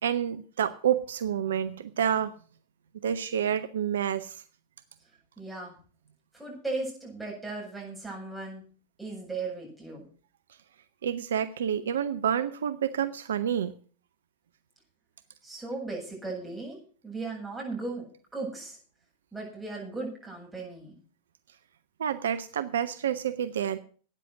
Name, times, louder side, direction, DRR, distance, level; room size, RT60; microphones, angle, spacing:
voice 1, 0.0-2.3 3.0-4.4 11.0-13.7 22.0-23.8, right 9 dB, 65° right, 12 dB, 0.7 m, -28 dB
voice 2, 5.4-5.7 6.3-8.6 9.0-10.1 15.4-16.8 17.0-18.0 18.3-18.8 19.3-20.9, right 3 dB, 5° right, -2 dB, 7.8 m, -36 dB
13.0 x 9.4 x 6.5 m, 0.42 s
figure-of-eight pair, 90°, 0 cm